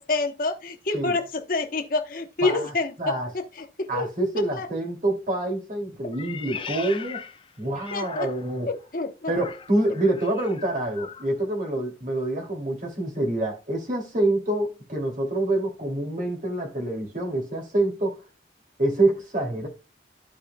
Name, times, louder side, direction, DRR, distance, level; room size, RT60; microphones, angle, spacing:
voice 1, 0.0-4.1 4.4-4.7 7.9-8.3 8.7-9.3, left 3 dB, 50° left, 1.0 m, -28 dB
voice 2, 2.4-2.7 3.0-3.3 3.9-7.2 7.6-8.7 9.3-18.2 18.8-19.7, right 1 dB, 45° right, 2.5 m, -26 dB
Meow, 6.1-8.7 9.2-11.3, left 6 dB, 30° left, 0.5 m, -39 dB
14.5 x 4.9 x 2.2 m
head